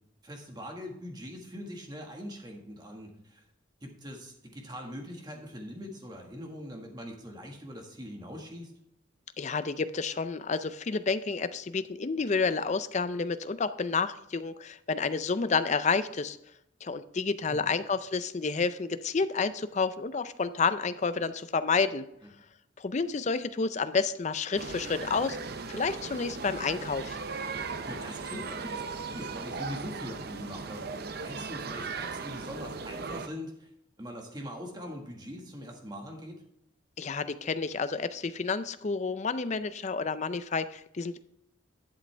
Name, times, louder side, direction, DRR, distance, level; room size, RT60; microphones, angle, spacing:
voice 1, 0.2-3.4 3.8-8.7 17.5-17.7 27.5-30.9 31.2-33.7 34.0-36.4, equal, 20° right, 1 dB, 1.5 m, -42 dB
voice 2, 9.4-16.4 16.8-22.0 22.8-25.4 25.7-27.2 37.0-41.2, left 4 dB, 35° left, 12 dB, 0.4 m, -30 dB
sound 1, 24.6-33.3, right 4 dB, 50° right, 0.5 m, -38 dB
11.5 x 7.5 x 3.3 m, 0.78 s
head